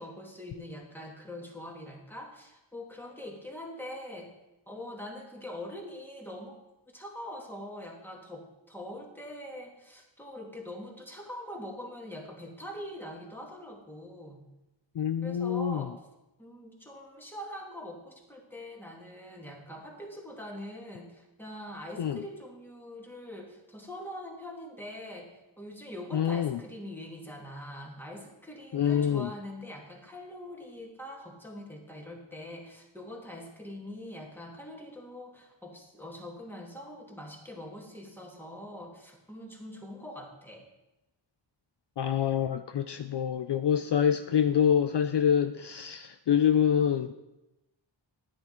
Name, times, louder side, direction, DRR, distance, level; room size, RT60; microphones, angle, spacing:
voice 1, 0.0-4.3 4.7-6.6 6.9-14.4 15.2-16.0 16.4-40.7, left 1 dB, 5° left, -1 dB, 2.3 m, -43 dB
voice 2, 15.0-15.9 22.0-22.2 26.1-26.6 28.7-29.3 42.0-47.1, left 8 dB, 60° left, 9 dB, 0.5 m, -26 dB
10.5 x 9.6 x 4.4 m, 0.97 s
wide cardioid pair, 75°, 47 cm